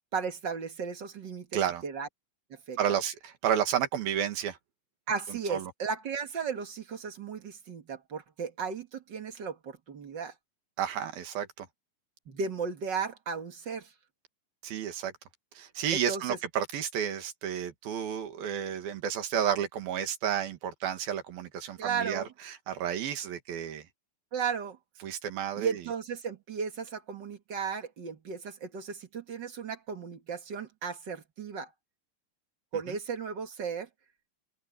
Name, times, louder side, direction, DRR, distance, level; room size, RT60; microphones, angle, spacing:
voice 1, 0.1-2.1 2.5-2.8 5.1-10.3 12.3-13.9 15.9-16.4 21.8-22.3 24.3-24.8 25.6-31.7 32.7-33.9, right 6 dB, 40° right, 1.7 m, -35 dB
voice 2, 1.5-1.8 2.8-4.6 5.3-5.7 10.8-11.7 14.6-15.1 15.6-23.9 25.0-25.8 32.9-33.0, right 9 dB, 85° right, 3.8 m, -31 dB
open air
omnidirectional pair, 4.1 m